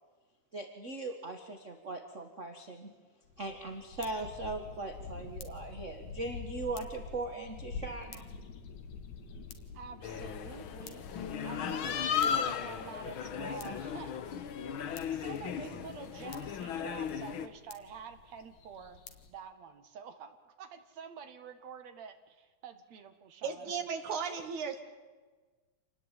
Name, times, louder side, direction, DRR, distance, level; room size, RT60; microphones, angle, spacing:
voice 1, 0.5-2.9 3.4-8.3, right 2 dB, 30° right, 6 dB, 1.7 m, -39 dB
sound 1, 3.2-19.3, left 5 dB, 75° left, 3.3 m, -48 dB
voice 2, 9.7-14.2 15.1-19.0 19.3-23.9, right 6 dB, 65° right, 8 dB, 3.0 m, -48 dB
sound 2, 10.0-17.5, left 7 dB, 55° left, 1.7 m, -36 dB
voice 3, 23.4-24.8, right 6 dB, 85° right, 5 dB, 3.5 m, -35 dB
28.0 x 19.5 x 9.2 m, 1.3 s
omnidirectional pair, 3.3 m